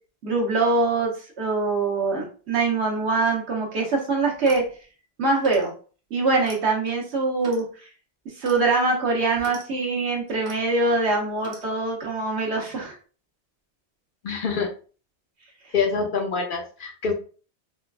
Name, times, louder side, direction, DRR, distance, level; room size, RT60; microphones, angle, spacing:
voice 1, 0.2-1.1 1.4-4.6 5.2-5.7 6.1-7.6 8.4-13.0, right 3 dB, 75° right, -1 dB, 1.2 m, -23 dB
Clock, 4.3-4.7 5.4-5.7 6.4-6.6 7.4-7.7 8.4-8.6 9.4-9.6 10.4-10.6 11.4-11.7, right 1 dB, 40° right, 0.8 m, -41 dB
voice 2, 14.2-14.7 15.7-17.1, left 5 dB, 60° left, 3 dB, 0.6 m, -25 dB
4.2 x 2.3 x 2.2 m, 0.39 s
omnidirectional pair, 1.1 m